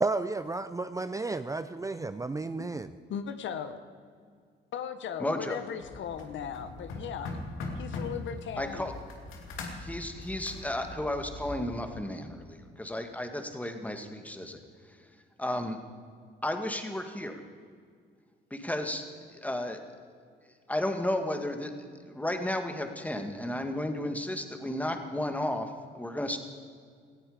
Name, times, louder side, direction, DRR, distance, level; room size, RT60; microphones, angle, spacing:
voice 1, 0.0-2.9, right 3 dB, 15° right, 12 dB, 0.5 m, -32 dB
voice 2, 3.1-3.8 4.7-7.4 7.8-8.9, left 8 dB, 70° left, 10 dB, 1.2 m, -37 dB
voice 3, 5.2-5.6 8.6-8.9 9.8-14.6 14.9-15.1 15.4-15.8 16.4-17.4 18.5-19.0 19.3-19.8 20.7-21.7 22.1-26.4, left 1 dB, 5° left, 6 dB, 1.9 m, -33 dB
sound 1, 5.8-11.8, left 2 dB, 90° left, 2.6 m, -41 dB
18.5 x 14.5 x 5.1 m, 2.1 s
cardioid pair, 90°, 20 cm